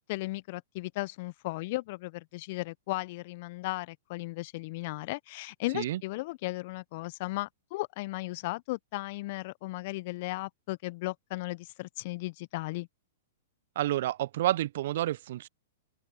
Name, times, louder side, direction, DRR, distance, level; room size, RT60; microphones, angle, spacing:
voice 1, 0.1-12.9, left 21 dB, 50° left, 0.6 m, -36 dB
voice 2, 13.8-15.5, right 14 dB, 60° right, 0.5 m, -29 dB
open air
hypercardioid pair, 110°, 0 cm